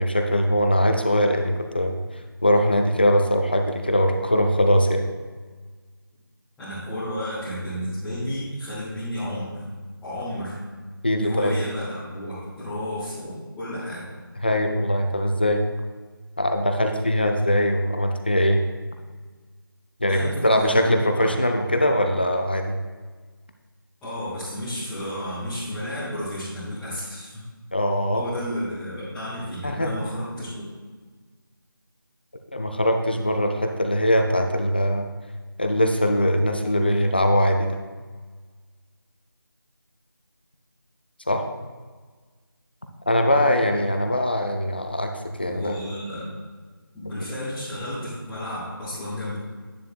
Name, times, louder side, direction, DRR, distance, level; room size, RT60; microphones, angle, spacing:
voice 1, 0.0-2.0 2.4-5.1 11.0-11.6 14.4-15.6 16.4-18.6 20.0-22.8 27.7-28.3 29.6-30.0 32.5-35.1 35.6-37.8 41.3-41.4 43.1-45.8 47.1-47.3, equal, 25° left, 4 dB, 0.5 m, -21 dB
voice 2, 6.6-9.6 10.0-10.6 11.2-14.0 20.0-21.4 24.0-27.4 28.1-30.6 45.4-46.3 46.9-49.4, equal, ahead, -19 dB, 1.0 m, -32 dB
10.0 x 8.8 x 2.3 m, 1.4 s
figure-of-eight pair, 170°, 12 cm